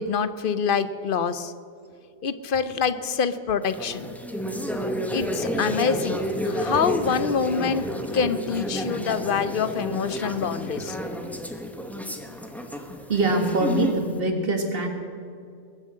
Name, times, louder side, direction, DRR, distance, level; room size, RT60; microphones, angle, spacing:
voice 1, 0.0-1.5 2.2-4.1 5.1-6.2 6.4-7.8 8.1-11.0, left 6 dB, 55° left, 12 dB, 0.8 m, -26 dB
sound 1, 3.6-14.1, equal, ahead, 0.9 m, -30 dB
voice 2, 13.1-14.9, right 2 dB, 50° right, 4 dB, 1.8 m, -23 dB
21.5 x 7.6 x 7.5 m, 2.4 s
omnidirectional pair, 1.2 m